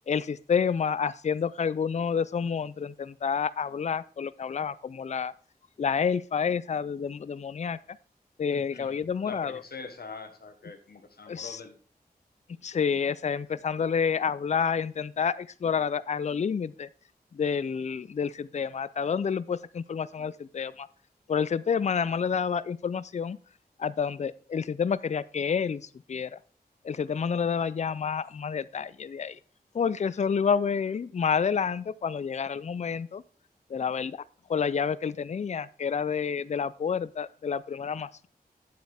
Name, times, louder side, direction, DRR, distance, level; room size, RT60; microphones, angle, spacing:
voice 1, 0.1-5.3 5.8-7.8 8.4-9.6 11.3-11.6 12.6-16.9 17.3-20.9 21.3-23.4 23.8-26.4 26.8-29.4 29.7-33.2 33.7-34.2 34.5-38.3, left 6 dB, 45° left, 17 dB, 0.4 m, -29 dB
voice 2, 8.5-11.7, left 4 dB, 70° left, 7 dB, 1.3 m, -44 dB
8.6 x 7.8 x 3.5 m, 0.42 s
wide cardioid pair, 55°, 16 cm